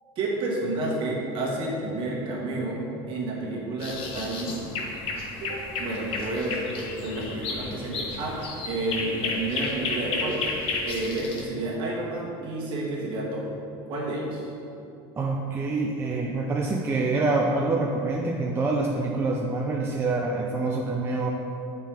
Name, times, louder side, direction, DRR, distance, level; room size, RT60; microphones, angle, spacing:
voice 1, 0.1-4.6 5.4-8.4 8.6-10.4 10.8-13.5 13.9-14.5, right 2 dB, 45° right, -4 dB, 1.5 m, -30 dB
sound 1, 3.8-11.4, left 3 dB, 45° left, 0.8 m, -32 dB
voice 2, 15.2-21.3, right 3 dB, 20° right, -1 dB, 0.4 m, -26 dB
7.2 x 4.6 x 3.4 m, 2.8 s
supercardioid pair, 140°, 13 cm